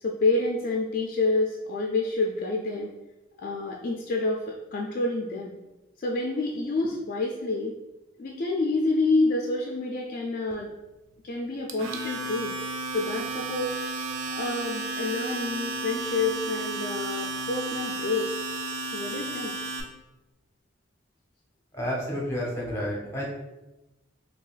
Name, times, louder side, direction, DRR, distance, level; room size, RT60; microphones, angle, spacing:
voice 1, 0.0-2.9 3.4-5.5 6.0-7.7 8.2-10.7 11.2-12.5 12.9-13.8 14.3-18.3 18.9-19.5, left 3 dB, 45° left, 0 dB, 0.3 m, -28 dB
Domestic sounds home sounds, 11.7-19.8, right 2 dB, 80° right, 0.5 m, -33 dB
voice 2, 21.7-23.3, equal, 15° left, -4 dB, 0.8 m, -30 dB
3.8 x 2.8 x 2.4 m, 0.99 s
head